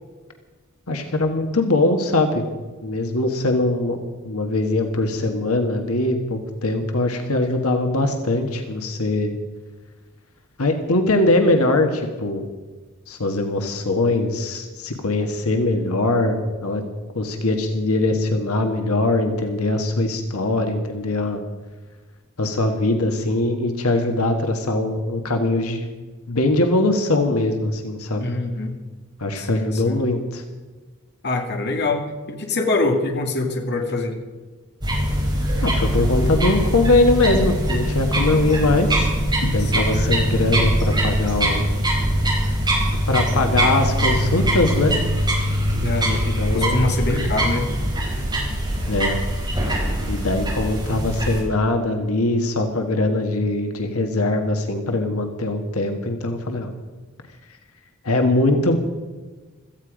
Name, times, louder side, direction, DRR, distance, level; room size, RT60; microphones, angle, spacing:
voice 1, 0.9-2.4 2.8-4.0 4.2-9.3 10.6-12.4 13.1-16.8 17.1-21.4 22.4-25.9 26.3-28.2 29.2-30.4 35.6-39.1 39.4-41.7 43.1-44.9 46.0-46.9 48.9-49.2 50.1-56.7 58.0-58.8, left 2 dB, 85° left, 5 dB, 1.6 m, -21 dB
voice 2, 28.2-28.8 29.4-30.0 31.2-34.2 39.6-40.0 45.8-47.7, left 2 dB, 50° left, 3 dB, 2.2 m, -25 dB
sound 1, 34.8-51.4, equal, 20° right, 5.1 m, -22 dB
17.0 x 14.5 x 5.1 m, 1.3 s
head